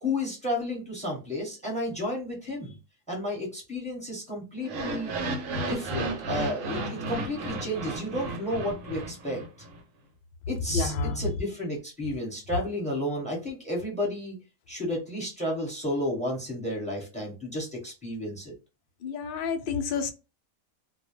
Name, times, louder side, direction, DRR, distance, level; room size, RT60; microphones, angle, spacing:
voice 1, 0.0-2.8 3.1-5.1 5.7-9.4 10.5-14.4 14.7-18.5, left 1 dB, 5° left, 1.0 m, -32 dB
sound 1, 4.6-9.8, right 2 dB, 70° right, 1.0 m, -33 dB
voice 2, 10.7-11.2 19.0-20.1, left 4 dB, 75° left, 0.5 m, -29 dB
2.3 x 2.1 x 3.0 m
omnidirectional pair, 1.5 m